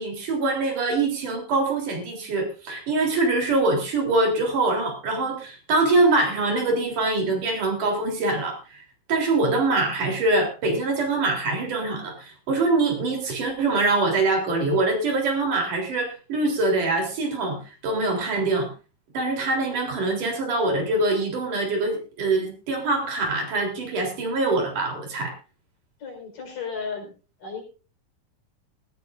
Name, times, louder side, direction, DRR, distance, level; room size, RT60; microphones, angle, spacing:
voice 1, 0.0-8.8 9.1-18.7 19.1-25.3, right 2 dB, 65° right, 2 dB, 5.1 m, -24 dB
voice 2, 26.0-27.1 27.4-27.6, left 5 dB, 75° left, 2 dB, 6.3 m, -34 dB
18.5 x 16.0 x 2.6 m, 0.34 s
omnidirectional pair, 3.9 m